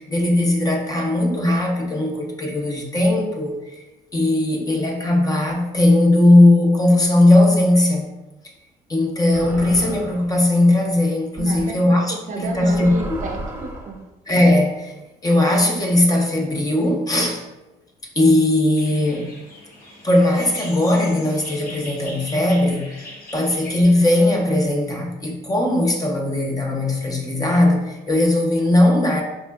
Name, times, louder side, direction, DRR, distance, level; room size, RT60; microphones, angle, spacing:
voice 1, 0.0-3.8 4.1-8.0 8.9-12.9 14.3-14.9 15.2-17.4 18.2-19.3 20.0-29.2, left 1 dB, 20° left, 1 dB, 0.6 m, -18 dB
sound 1, 9.3-10.4 11.4-11.6 12.4-14.0, right 1 dB, 15° right, 0.7 m, -33 dB
voice 2, 11.4-11.8 12.1-14.0, right 3 dB, 50° right, 3 dB, 0.5 m, -31 dB
sound 2, 18.8-23.8, left 1 dB, 60° left, 1.0 m, -40 dB
4.3 x 2.6 x 2.2 m, 1.0 s
cardioid pair, 110°, 17 cm